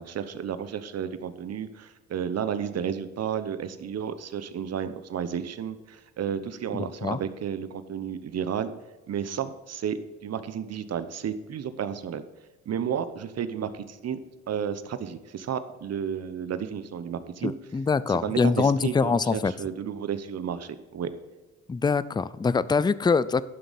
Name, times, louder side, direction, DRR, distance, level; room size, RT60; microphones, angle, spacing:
voice 1, 0.0-8.7 9.1-12.2 12.7-14.2 14.5-17.5 18.1-21.1, right 8 dB, 55° right, 12 dB, 1.0 m, -32 dB
voice 2, 6.7-7.2 17.4-19.5 21.7-23.4, left 4 dB, 15° left, 18 dB, 0.4 m, -24 dB
11.0 x 6.3 x 5.3 m, 1.2 s
cardioid pair, 90°, 30 cm